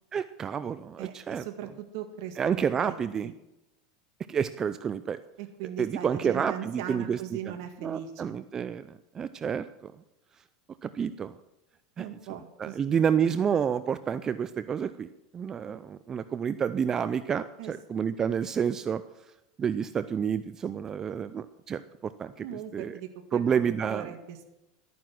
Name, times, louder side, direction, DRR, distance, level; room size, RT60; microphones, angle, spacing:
voice 1, 0.1-1.4 2.4-3.3 4.3-5.2 5.8-7.2 7.8-8.9 9.1-9.7 10.8-11.3 12.0-12.1 12.6-15.1 15.3-19.0 19.6-22.5 22.7-22.9 23.3-24.1, right 7 dB, 25° right, 13 dB, 0.5 m, -29 dB
voice 2, 1.0-2.9 3.2-3.3 5.4-8.2 12.0-13.0 17.6-17.7 22.4-24.5, right 10 dB, 70° right, 5 dB, 1.8 m, -39 dB
13.0 x 9.4 x 6.0 m, 0.91 s
supercardioid pair, 125°, 2 cm